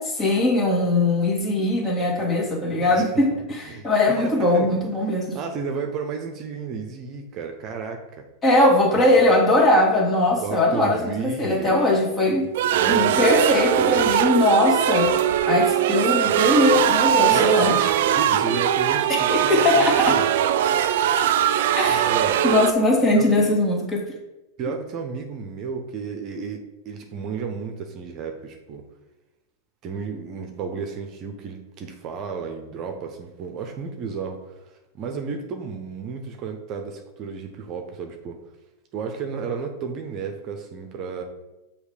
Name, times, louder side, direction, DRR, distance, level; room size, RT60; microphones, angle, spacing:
voice 1, 0.0-5.4 8.4-12.5 12.9-15.1 15.5-17.8 19.1-20.2 21.8-22.1 22.4-24.1, left 2 dB, 20° left, -1 dB, 1.9 m, -20 dB
voice 2, 3.7-4.7 5.3-8.3 8.9-9.4 10.4-11.8 12.7-13.5 13.8-14.1 16.2-16.3 17.3-20.3 21.9-22.4 23.1-23.5 24.6-28.8 29.8-38.4 38.9-41.2, right 5 dB, 40° right, 4 dB, 0.7 m, -32 dB
sound 1, 12.5-22.7, right 10 dB, 65° right, 0.4 m, -20 dB
6.4 x 3.0 x 5.0 m, 1.0 s
hypercardioid pair, 105°, 0 cm